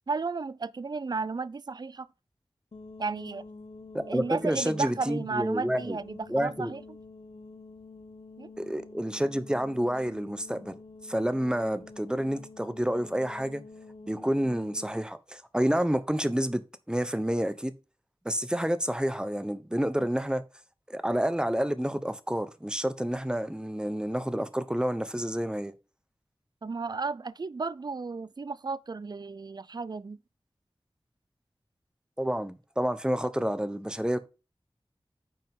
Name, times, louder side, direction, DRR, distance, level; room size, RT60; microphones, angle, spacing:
voice 1, 0.1-2.1 3.0-3.4 4.1-6.8 8.4-8.5 26.6-30.2, right 4 dB, 45° right, 0.4 m, -33 dB
sound 1, 2.7-15.1, left 3 dB, 75° left, 1.1 m, -48 dB
voice 2, 3.9-6.0 6.3-6.7 8.6-10.7 11.0-13.6 14.1-16.6 16.9-17.7 18.2-20.4 20.9-25.7 32.2-34.2, equal, 10° right, 1.0 m, -29 dB
9.3 x 5.3 x 3.7 m
wide cardioid pair, 70°, 10 cm